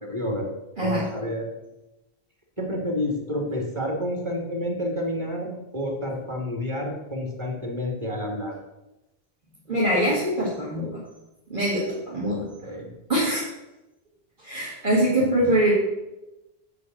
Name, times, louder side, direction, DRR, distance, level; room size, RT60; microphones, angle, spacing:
voice 1, 0.0-1.5 2.6-8.6 12.3-12.9 15.4-15.5, left 1 dB, 25° right, 0 dB, 2.4 m, -29 dB
voice 2, 9.7-11.0 11.5-12.5 13.1-13.5 14.4-15.7, right 1 dB, 50° right, -7 dB, 2.5 m, -23 dB
8.3 x 5.8 x 7.6 m, 0.96 s
omnidirectional pair, 1.1 m